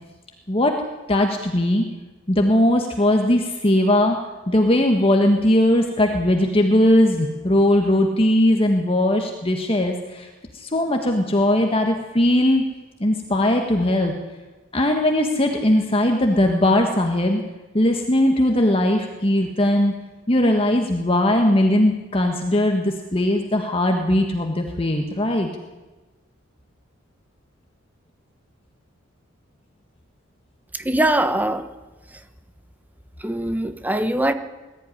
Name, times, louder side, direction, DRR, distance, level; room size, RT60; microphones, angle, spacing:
voice 1, 1.1-1.8 2.3-4.2 4.5-10.3 10.5-12.7 13.0-14.1 14.7-17.4 17.7-19.9 20.3-25.5, left 1 dB, 30° left, 3 dB, 1.6 m, -19 dB
voice 2, 30.7-31.7 33.2-34.3, right 1 dB, 10° right, 10 dB, 1.1 m, -22 dB
20.5 x 14.0 x 10.0 m, 1.2 s
head